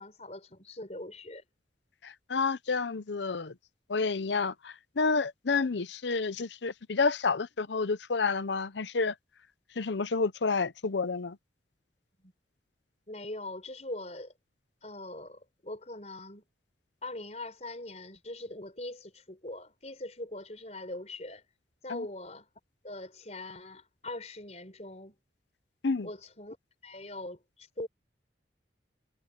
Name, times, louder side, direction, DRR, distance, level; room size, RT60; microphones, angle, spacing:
voice 1, 0.0-1.4 12.2-12.3 13.1-14.3 14.8-16.4 17.0-21.4 21.8-22.5 22.8-25.2 26.0-26.6 26.8-27.9, left 1 dB, 40° left, 4.8 m, -42 dB
voice 2, 2.0-3.5 3.9-9.1 9.8-11.4 21.9-22.0 25.8-26.1, left 4 dB, 80° left, 0.7 m, -29 dB
head